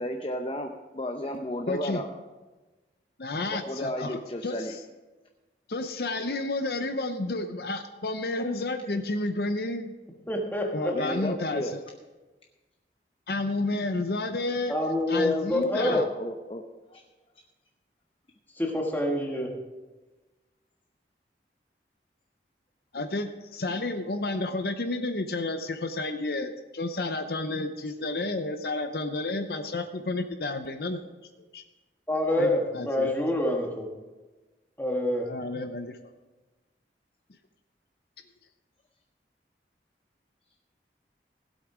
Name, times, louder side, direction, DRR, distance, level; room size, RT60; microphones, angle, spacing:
voice 1, 0.0-2.1 3.5-4.8 10.9-11.7 15.9-16.6 16.9-17.0, left 1 dB, 30° left, 4 dB, 0.7 m, -33 dB
voice 2, 1.7-2.0 3.2-4.8 5.7-9.9 10.7-11.7 13.3-14.7 15.1-16.1 22.9-31.0 31.5-31.6 32.4-33.1 35.3-36.0, left 2 dB, 60° left, 7 dB, 0.7 m, -31 dB
voice 3, 10.3-10.9 14.7-16.0 18.5-19.6 32.1-33.9 34.8-35.3, left 1 dB, 10° left, 0 dB, 1.6 m, -26 dB
16.5 x 8.1 x 5.0 m, 1.2 s
head